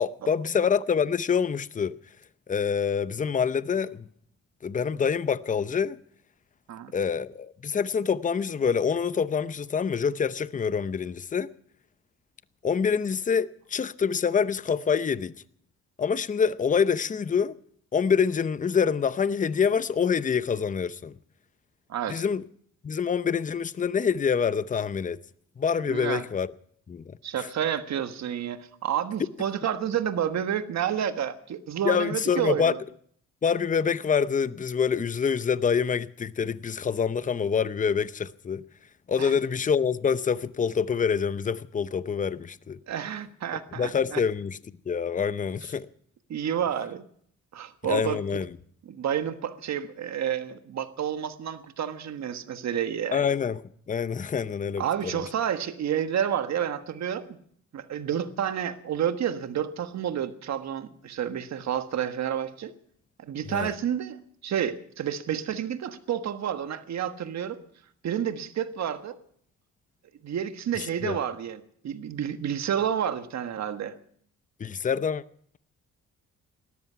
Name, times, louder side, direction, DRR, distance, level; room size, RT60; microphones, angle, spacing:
voice 1, 0.0-2.0 2.5-4.0 4.6-6.0 6.9-11.5 12.6-15.3 16.0-17.5 17.9-21.1 22.1-22.4 22.8-25.2 25.6-26.5 26.9-27.5 31.8-32.7 33.4-38.6 39.1-42.8 43.8-44.6 44.9-45.9 47.8-48.5 53.1-53.6 53.9-54.8 55.1-55.2 63.5-63.7 71.0-71.2 74.6-75.2, left 6 dB, 25° left, 0.7 m, -26 dB
voice 2, 21.9-22.2 25.9-26.2 27.2-32.8 39.2-39.4 42.9-44.2 46.3-47.1 47.5-48.2 48.8-53.2 54.8-57.4 57.7-62.7 63.2-67.6 68.0-69.2 70.2-73.9, right 9 dB, 60° right, 1.5 m, -30 dB
18.5 x 13.5 x 5.7 m
cardioid pair, 90°, 30 cm